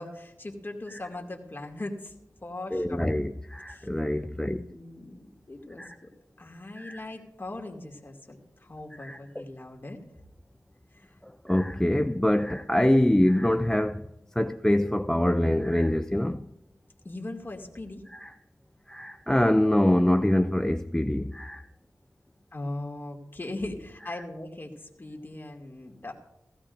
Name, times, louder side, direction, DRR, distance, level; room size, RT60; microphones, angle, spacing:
voice 1, 0.0-2.1 2.4-3.1 3.7-3.9 4.3-6.1 6.4-10.0 10.9-11.1 17.0-18.0 22.5-26.1, left 2 dB, 35° left, 2.3 m, -39 dB
voice 2, 2.7-4.7 5.8-5.9 6.8-7.0 9.0-9.4 11.2-14.1 14.4-16.5 18.1-18.3 18.9-21.7 24.1-24.2, left 1 dB, 10° left, 0.4 m, -25 dB
16.0 x 15.5 x 2.6 m
cardioid pair, 55°, 6 cm